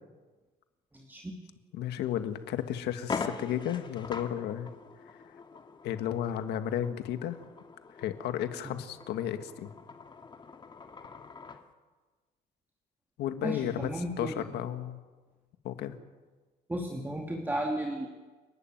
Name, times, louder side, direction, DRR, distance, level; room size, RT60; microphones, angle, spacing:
voice 1, 0.9-1.3 8.6-8.8 13.4-14.5 16.7-18.1, right 1 dB, 10° right, 1 dB, 2.5 m, -34 dB
voice 2, 1.7-4.7 5.1-5.2 5.8-7.4 8.0-9.7 13.2-13.9 14.2-15.0 15.6-16.0, left 10 dB, 80° left, 9 dB, 1.8 m, -33 dB
sound 1, 2.0-2.1 2.6-2.7 3.0-11.7, left 4 dB, 25° left, 2.0 m, -43 dB
29.5 x 12.0 x 9.3 m, 1.3 s
cardioid pair, 110°, 17 cm